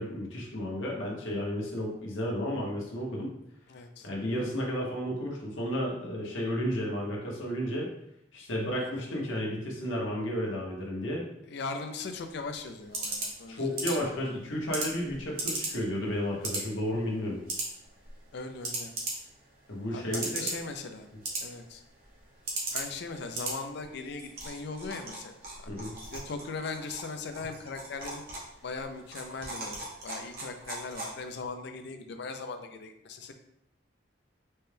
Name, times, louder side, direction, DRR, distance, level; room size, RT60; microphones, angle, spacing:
voice 1, 0.0-3.3 4.0-7.9 8.3-11.2 13.5-17.4 19.7-20.5 25.7-25.9, equal, 85° left, -2 dB, 1.1 m, -32 dB
voice 2, 3.7-4.1 8.8-9.0 11.5-14.1 18.3-18.9 19.9-21.1 21.4-21.8 22.7-25.3 25.6-25.7 26.1-28.2 28.6-33.3, left 4 dB, 60° left, 6 dB, 0.4 m, -39 dB
sound 1, 12.1-31.5, right 2 dB, 50° right, 0.9 m, -39 dB
4.2 x 2.2 x 3.3 m, 0.79 s
head